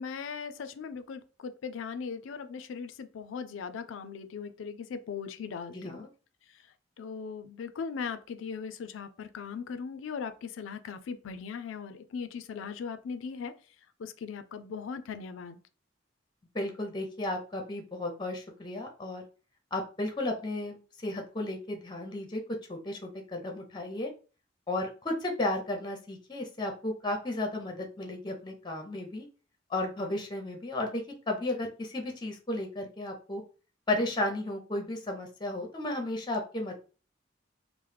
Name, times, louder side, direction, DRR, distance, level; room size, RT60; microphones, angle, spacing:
voice 1, 0.0-6.1 7.0-13.5 14.0-15.6, left 6 dB, 90° left, 0.4 m, -39 dB
voice 2, 5.7-6.1 16.5-19.2 19.7-22.4 22.7-24.1 24.7-29.3 29.7-33.4 33.9-36.7, left 1 dB, 25° left, 0.6 m, -34 dB
3.1 x 2.0 x 3.2 m
head